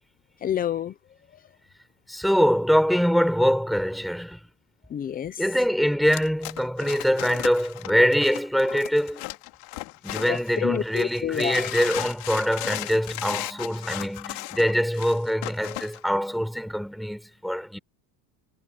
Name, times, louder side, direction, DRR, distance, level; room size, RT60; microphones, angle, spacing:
voice 1, 0.4-0.9 4.9-5.4 10.3-11.7, left 9 dB, 20° left, 0.6 m, -28 dB
voice 2, 2.1-4.4 5.4-9.2 10.0-17.8, equal, ahead, 4.9 m, -24 dB
sound 1, 6.1-10.6 10.9-16.0, left 23 dB, 85° left, 2.4 m, -36 dB
cardioid pair, 175°, 45 cm